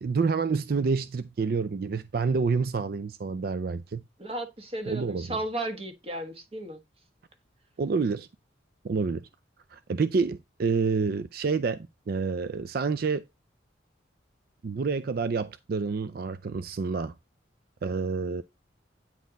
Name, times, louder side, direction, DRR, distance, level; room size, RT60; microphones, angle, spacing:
voice 1, 0.0-4.0 4.9-5.3 7.8-8.3 8.8-9.2 9.7-11.8 12.1-13.2 14.6-17.1 17.8-18.4, right 4 dB, 50° right, 0.4 m, -28 dB
voice 2, 4.2-6.8, right 1 dB, 30° right, 1.4 m, -34 dB
9.2 x 4.2 x 4.0 m
head